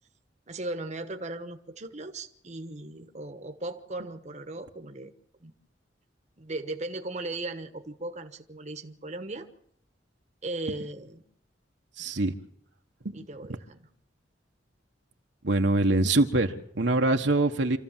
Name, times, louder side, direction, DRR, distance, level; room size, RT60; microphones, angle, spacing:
voice 1, 0.5-5.1 5.4-5.5 6.4-9.5 10.4-11.2 13.1-13.9, right 2 dB, 40° right, 7 dB, 1.3 m, -37 dB
voice 2, 12.0-12.3 13.0-13.2 15.4-17.8, right 2 dB, 75° right, 4 dB, 1.4 m, -24 dB
26.5 x 14.0 x 7.5 m, 0.70 s
head